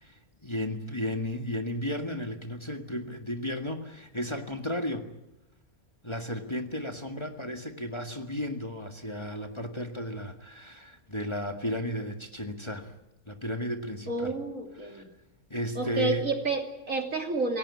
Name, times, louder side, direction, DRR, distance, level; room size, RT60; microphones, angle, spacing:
voice 1, 0.4-5.1 6.0-12.9 13.3-14.3 14.8-15.0 15.5-16.2, left 1 dB, 20° left, 4 dB, 1.8 m, -34 dB
voice 2, 14.1-15.1 15.7-17.6, right 3 dB, 65° right, 3 dB, 3.3 m, -30 dB
28.0 x 16.5 x 9.6 m, 0.95 s
omnidirectional pair, 1.5 m